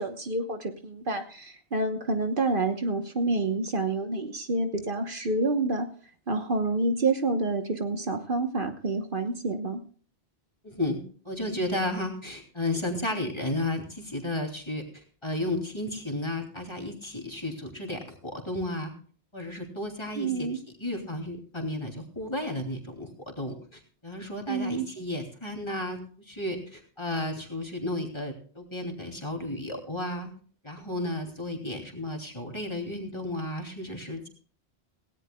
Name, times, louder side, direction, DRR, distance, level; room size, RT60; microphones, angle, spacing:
voice 1, 0.0-5.9 6.3-9.8 20.2-20.6 24.5-24.9, right 2 dB, 55° right, 6 dB, 1.3 m, -28 dB
voice 2, 10.6-18.9 19.3-20.5 20.8-23.1 23.4-30.3 30.6-34.3, left 1 dB, 25° left, 2 dB, 2.9 m, -33 dB
18.0 x 17.0 x 2.3 m, 0.43 s
omnidirectional pair, 1.1 m